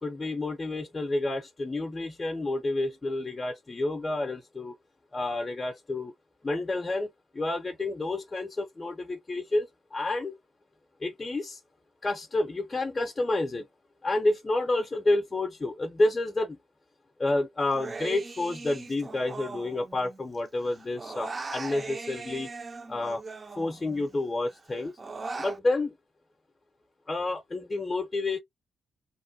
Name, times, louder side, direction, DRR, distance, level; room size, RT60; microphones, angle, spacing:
voice 1, 0.0-4.7 5.1-6.1 6.4-7.1 7.3-10.4 11.0-11.6 12.0-13.7 14.0-16.6 17.2-22.5 22.9-23.2 23.6-25.0 25.4-25.9 27.1-28.4, left 2 dB, 25° left, 0.5 m, -29 dB
Human voice, 17.7-20.4 20.6-24.1 24.5-25.6, right 3 dB, 30° right, 0.4 m, -40 dB
2.9 x 2.1 x 2.6 m
cardioid pair, 90°, 0 cm